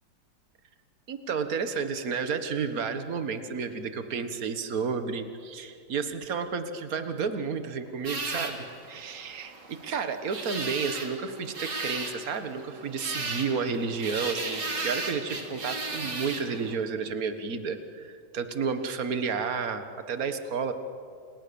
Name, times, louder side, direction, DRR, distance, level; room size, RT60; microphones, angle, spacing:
voice 1, 1.1-20.7, right 5 dB, 55° right, 8 dB, 1.9 m, -31 dB
sound 1, 8.0-16.8, right 3 dB, 75° right, 3.7 m, -36 dB
30.0 x 28.5 x 7.1 m, 2.4 s
omnidirectional pair, 1.9 m